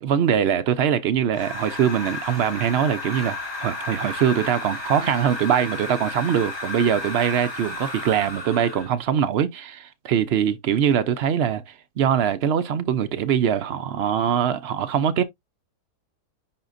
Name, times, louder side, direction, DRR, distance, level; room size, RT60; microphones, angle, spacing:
voice 1, 0.0-15.2, right 8 dB, 75° right, 0.5 m, -22 dB
sound 1, 1.3-9.0, left 2 dB, 15° left, 2.4 m, -33 dB
9.9 x 3.7 x 2.5 m
omnidirectional pair, 1.7 m